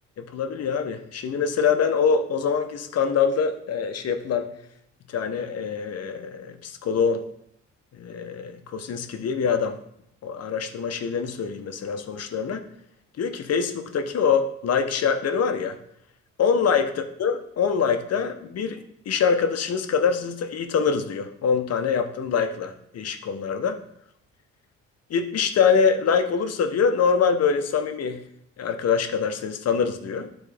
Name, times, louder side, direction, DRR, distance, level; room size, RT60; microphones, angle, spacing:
voice 1, 0.2-4.5 5.1-7.3 8.0-9.8 10.2-12.7 13.2-15.8 16.4-23.8 25.1-28.2 28.6-30.3, left 6 dB, 55° left, 7 dB, 0.8 m, -24 dB
9.6 x 3.9 x 3.3 m, 0.73 s
cardioid pair, 90°, 30 cm